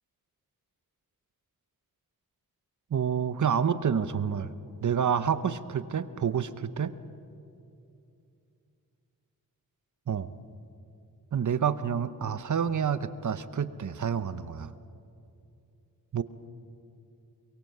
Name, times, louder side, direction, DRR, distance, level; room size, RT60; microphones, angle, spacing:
voice 1, 2.9-4.5 4.8-6.9 10.1-10.3 11.3-14.7 16.1-16.2, right 7 dB, 55° right, 13 dB, 0.9 m, -28 dB
23.0 x 22.5 x 7.9 m, 2.6 s
wide cardioid pair, 135°, 35 cm